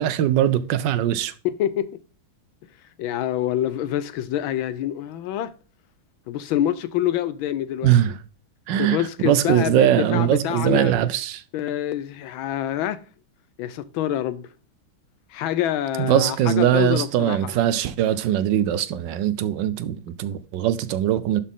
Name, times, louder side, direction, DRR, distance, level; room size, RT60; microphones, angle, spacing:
voice 1, 0.0-1.3 7.8-8.2 8.7-11.4 16.0-21.4, right 11 dB, 70° right, 1.1 m, -21 dB
voice 2, 1.4-2.0 3.0-5.5 6.3-7.9 8.7-10.9 11.5-13.0 13.6-14.5 15.3-17.5, left 11 dB, 75° left, 1.3 m, -26 dB
11.5 x 4.2 x 3.6 m
omnidirectional pair, 2.3 m